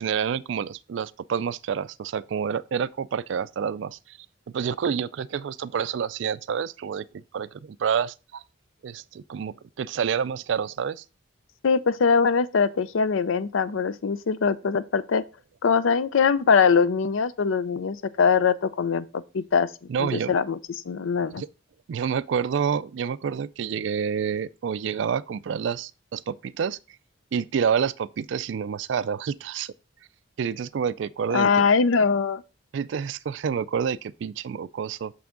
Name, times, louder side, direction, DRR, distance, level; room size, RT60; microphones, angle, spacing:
voice 1, 0.0-4.2 4.5-7.1 7.3-8.4 8.8-11.0 19.9-20.3 21.3-21.5 21.9-26.8 27.3-29.7 30.4-31.6 32.7-35.1, right 7 dB, 60° right, 0.3 m, -28 dB
voice 2, 11.6-15.2 15.6-19.7 20.0-20.6 20.9-21.4 31.3-32.4, left 5 dB, 75° left, 0.5 m, -22 dB
6.2 x 5.9 x 3.7 m
head